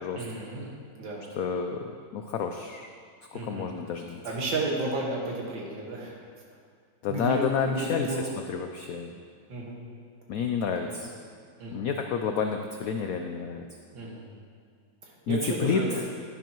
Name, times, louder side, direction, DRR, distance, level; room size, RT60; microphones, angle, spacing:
voice 1, 0.1-0.7 1.0-1.2 3.3-3.7 4.2-6.2 7.1-8.2 9.5-9.8 10.7-10.9 11.6-11.8 13.9-14.3 15.0-15.9, right 2 dB, 75° right, -3 dB, 2.3 m, -32 dB
voice 2, 1.4-1.8 2.1-2.9 3.3-4.2 7.0-8.1 8.5-9.2 10.3-11.1 11.7-13.6 15.3-16.0, left 6 dB, 85° left, 5 dB, 0.7 m, -30 dB
11.0 x 10.5 x 3.0 m, 2.1 s
omnidirectional pair, 2.1 m